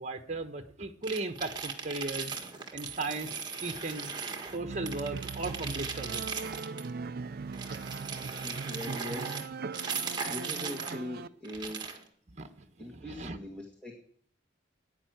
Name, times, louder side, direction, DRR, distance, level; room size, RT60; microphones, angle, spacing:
voice 1, 0.0-2.3 2.7-4.1 4.5-6.2 12.3-12.7 12.9-13.4, right 2 dB, 40° right, 6 dB, 1.2 m, -37 dB
sound 1, 1.0-4.6 4.9-6.9 7.5-11.0 11.4-12.0, right 5 dB, 25° right, 1.6 m, -38 dB
sound 2, 4.5-11.3, right 4 dB, 55° right, 0.5 m, -40 dB
voice 2, 8.2-12.0 12.8-13.9, left 1 dB, 5° left, -1 dB, 1.9 m, -42 dB
11.5 x 9.5 x 9.2 m, 0.64 s
head